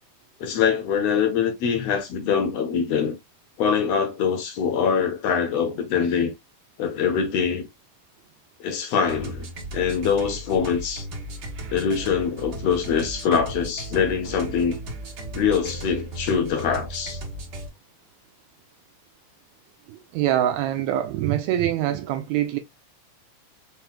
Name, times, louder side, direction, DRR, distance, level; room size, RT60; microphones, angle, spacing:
voice 1, 0.4-3.2 3.6-6.3 6.8-7.7 8.6-11.1 11.7-14.8 15.3-17.2, left 7 dB, 65° left, 1.9 m, -24 dB
sound 1, 9.0-17.7, right 1 dB, 50° right, 1.4 m, -36 dB
voice 2, 19.9-22.6, right 12 dB, 80° right, 1.8 m, -24 dB
5.5 x 3.0 x 2.2 m
omnidirectional pair, 3.4 m